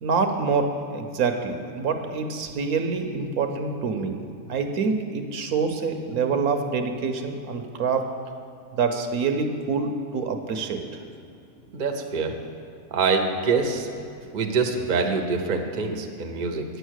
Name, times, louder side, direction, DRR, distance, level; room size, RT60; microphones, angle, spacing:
voice 1, 0.0-4.2 4.5-8.1 8.7-11.0, right 5 dB, 70° right, 5 dB, 1.2 m, -26 dB
voice 2, 11.7-12.4 12.9-13.9 14.3-16.6, right 4 dB, 40° right, 4 dB, 0.8 m, -25 dB
9.5 x 8.0 x 6.4 m, 2.5 s
omnidirectional pair, 1.6 m